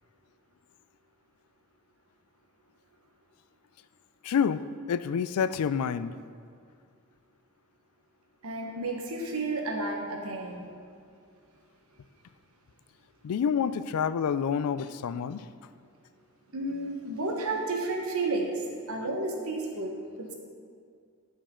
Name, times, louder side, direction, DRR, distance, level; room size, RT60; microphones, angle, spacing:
voice 1, 4.2-6.1 13.2-15.5, left 7 dB, 80° left, 14 dB, 0.3 m, -28 dB
voice 2, 8.4-10.7 16.5-20.3, right 2 dB, 70° right, 1 dB, 1.3 m, -32 dB
13.0 x 5.3 x 3.7 m, 2.3 s
head